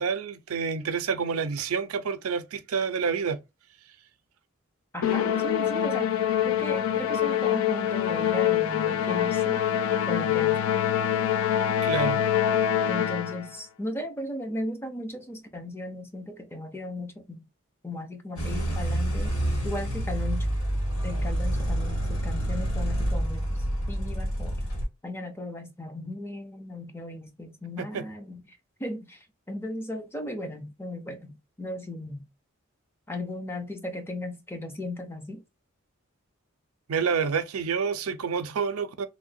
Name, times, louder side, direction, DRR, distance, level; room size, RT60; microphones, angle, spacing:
voice 1, 0.0-3.4 11.8-12.2 27.8-28.1 36.9-39.1, right 6 dB, 85° right, 0.5 m, -28 dB
voice 2, 4.9-9.6 10.1-10.6 12.9-17.5 17.8-19.3 19.6-20.5 21.0-24.6 25.0-28.4 28.8-32.3 33.1-35.4, left 1 dB, 10° left, 0.6 m, -36 dB
Musical instrument, 5.0-13.5, left 10 dB, 70° left, 0.3 m, -25 dB
sound 1, 18.4-24.9, right 1 dB, 85° left, 1.5 m, -28 dB
3.1 x 2.2 x 2.6 m
head